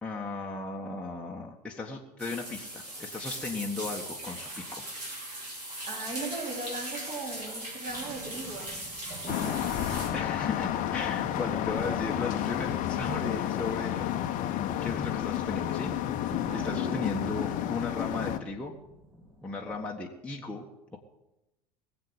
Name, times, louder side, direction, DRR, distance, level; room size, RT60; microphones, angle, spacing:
voice 1, 0.0-4.8 9.8-14.2 14.8-18.7 19.4-20.6 20.9-21.0, left 3 dB, 5° left, -2 dB, 1.5 m, -36 dB
sound 1, 2.2-10.1, right 1 dB, 70° right, 5.4 m, -39 dB
voice 2, 5.9-8.8 9.2-9.6 16.5-16.8, right 3 dB, 30° right, -1 dB, 3.5 m, -38 dB
sound 2, 7.9-19.9, right 2 dB, 10° right, 2.1 m, -47 dB
sound 3, 9.3-18.4, left 11 dB, 40° left, 1.0 m, -31 dB
19.5 x 8.0 x 8.1 m, 0.94 s
figure-of-eight pair, 80°, 21 cm